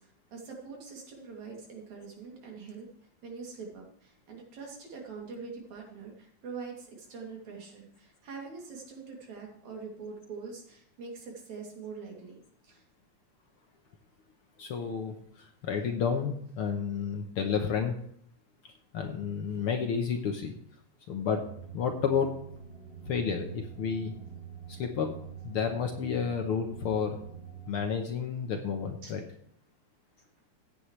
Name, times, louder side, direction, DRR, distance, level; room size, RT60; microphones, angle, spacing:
voice 1, 0.0-2.9 3.2-12.8 19.5-19.6 29.0-29.1, right 5 dB, 75° right, -1 dB, 4.2 m, -44 dB
voice 2, 14.6-17.9 18.9-20.6 21.1-21.4 21.7-22.3 23.1-24.1 24.7-25.1 25.4-27.2 27.7-29.2, left 6 dB, 60° left, 4 dB, 1.6 m, -31 dB
sound 1, 21.4-27.8, right 8 dB, 5° right, 4.4 m, -45 dB
15.5 x 8.7 x 3.3 m, 0.66 s
omnidirectional pair, 3.3 m